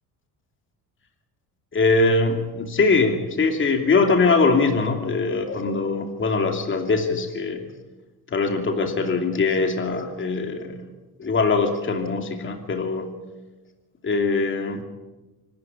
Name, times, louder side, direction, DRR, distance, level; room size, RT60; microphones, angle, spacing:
voice 1, 1.7-7.6 8.3-10.8 11.2-13.1 14.0-14.8, left 3 dB, 30° left, 4 dB, 2.8 m, -22 dB
25.5 x 13.0 x 8.5 m, 1.1 s
cardioid pair, 110°, 38 cm